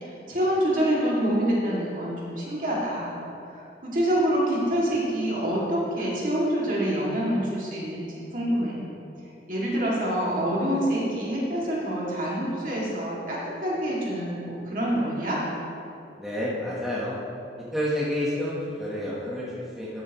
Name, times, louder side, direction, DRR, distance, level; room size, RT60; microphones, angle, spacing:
voice 1, 0.0-3.2 3.5-8.1 8.3-8.8 9.5-15.4, right 1 dB, 45° right, -6 dB, 2.4 m, -26 dB
voice 2, 16.2-17.2 17.7-20.0, left 1 dB, ahead, -8 dB, 1.2 m, -29 dB
13.0 x 8.2 x 3.1 m, 2.6 s
head